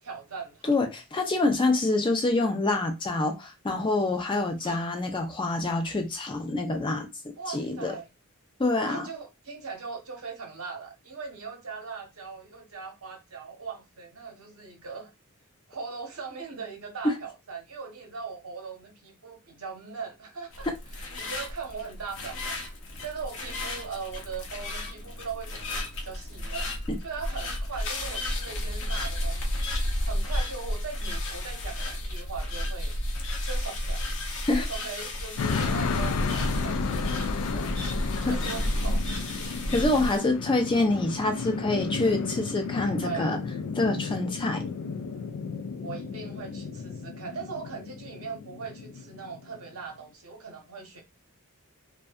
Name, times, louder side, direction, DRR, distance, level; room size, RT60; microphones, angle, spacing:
voice 1, 0.0-0.8 4.6-4.8 7.4-8.1 8.8-15.1 15.7-22.7 23.0-29.7 30.0-33.0 33.4-34.1 34.7-39.0 43.0-43.3 45.8-51.0, right 5 dB, 70° right, 0.8 m, -40 dB
voice 2, 0.7-7.1 7.5-7.9 8.6-9.0 17.0-17.1 34.5-34.7 38.3-38.4 39.7-43.4 43.7-44.7, left 2 dB, 20° left, 0.4 m, -26 dB
sound 1, 20.5-40.2, left 1 dB, 60° left, 0.7 m, -32 dB
sound 2, 35.4-49.6, left 5 dB, 85° left, 0.3 m, -33 dB
2.6 x 2.2 x 2.3 m
head